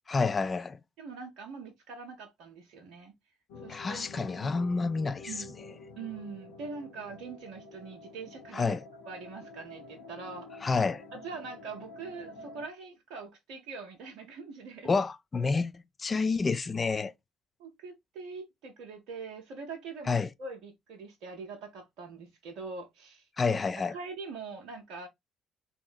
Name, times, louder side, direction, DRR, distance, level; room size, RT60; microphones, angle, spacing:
voice 1, 0.1-0.8 3.7-5.4 8.5-8.8 10.6-11.0 14.8-17.1 20.1-20.3 23.4-24.0, left 4 dB, 30° left, 0.4 m, -29 dB
voice 2, 1.0-3.1 3.6-4.2 5.3-5.6 6.0-8.8 9.1-10.7 11.1-14.9 17.6-23.6 23.9-25.1, right 4 dB, 60° right, 0.6 m, -43 dB
sound 1, 3.5-12.7, left 3 dB, 65° left, 0.9 m, -48 dB
4.4 x 2.9 x 2.3 m
figure-of-eight pair, 45°, 0 cm